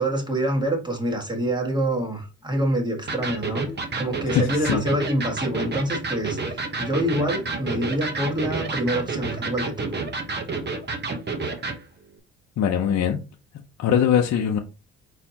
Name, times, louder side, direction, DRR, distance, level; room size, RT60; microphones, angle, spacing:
voice 1, 0.0-3.7 4.0-9.9, right 1 dB, 15° right, 1.6 m, -26 dB
Electric guitar, 3.1-11.8, right 3 dB, 35° right, 1.0 m, -30 dB
voice 2, 4.3-4.8 12.6-13.2 13.8-14.6, left 8 dB, 60° left, 0.7 m, -21 dB
4.3 x 4.2 x 2.8 m
cardioid pair, 90°, 30 cm